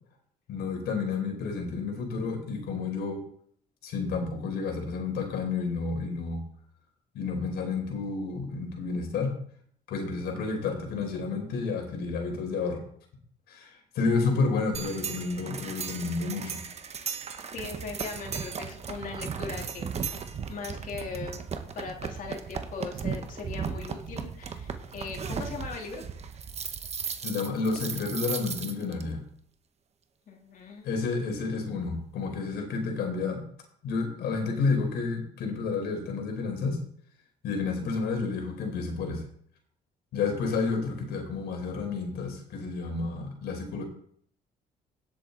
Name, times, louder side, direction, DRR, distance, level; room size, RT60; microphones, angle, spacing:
voice 1, 0.5-3.2 3.8-6.4 7.1-9.3 9.9-12.8 13.5-16.6 27.2-29.2 30.8-33.4 33.8-36.8 37.4-39.2 40.1-43.8, left 4 dB, 75° left, 3 dB, 4.4 m, -30 dB
sound 1, 14.7-29.0, right 6 dB, 40° right, 1.2 m, -36 dB
voice 2, 17.5-19.9 20.5-21.4 21.7-26.0 30.3-30.9, left 4 dB, 55° left, 1 dB, 3.1 m, -39 dB
17.5 x 7.8 x 4.0 m, 0.62 s
cardioid pair, 110°, 17 cm